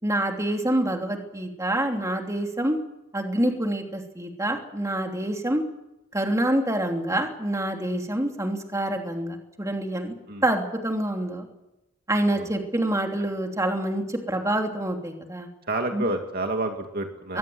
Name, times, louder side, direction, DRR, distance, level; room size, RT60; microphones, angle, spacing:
voice 1, 0.0-2.8 3.1-5.6 6.1-10.1 10.4-11.4 12.1-15.5 15.9-16.1 17.3-17.4, right 1 dB, 15° right, 3 dB, 3.0 m, -26 dB
voice 2, 15.7-17.4, right 2 dB, 45° right, 4 dB, 2.3 m, -29 dB
22.5 x 20.0 x 8.0 m, 0.93 s
head